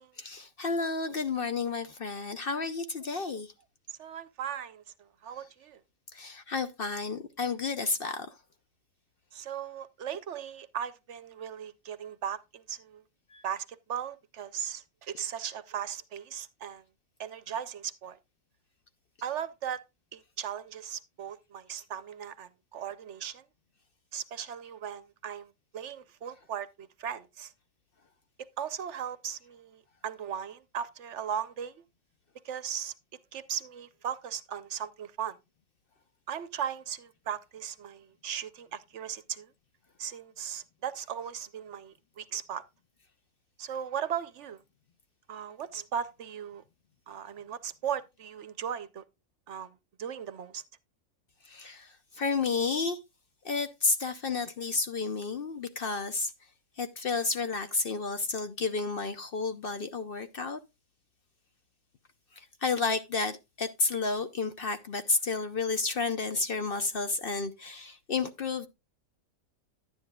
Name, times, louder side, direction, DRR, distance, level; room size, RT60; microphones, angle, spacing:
voice 1, 0.2-3.5 6.1-8.4 13.3-13.4 51.4-53.0 53.4-56.3 56.8-60.6 62.3-68.7, left 4 dB, 50° left, 0.7 m, -31 dB
voice 2, 3.9-5.8 9.3-13.0 13.4-16.8 17.2-18.2 19.2-19.8 20.1-23.4 24.1-27.5 28.6-31.8 32.4-32.9 33.3-35.4 36.3-39.5 40.0-42.6 43.6-44.6 45.3-46.6 47.1-49.0 49.5-50.6, right 8 dB, 65° right, 0.9 m, -37 dB
10.5 x 9.7 x 2.3 m
omnidirectional pair, 1.4 m